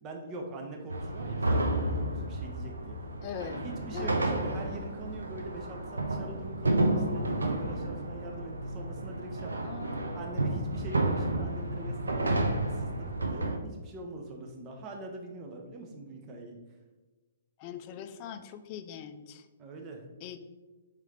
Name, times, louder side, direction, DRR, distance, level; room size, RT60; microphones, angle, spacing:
voice 1, 0.0-2.9 3.4-9.7 10.1-16.6 19.6-20.0, right 2 dB, 30° right, 2 dB, 0.7 m, -43 dB
sound 1, 0.9-13.6, right 2 dB, 90° right, 0.4 m, -31 dB
voice 2, 3.2-3.6 3.9-4.2 9.6-10.2 17.6-19.4 20.2-20.4, left 8 dB, 40° left, 9 dB, 0.3 m, -41 dB
3.6 x 3.2 x 3.3 m, 1.2 s
hypercardioid pair, 125°, 0 cm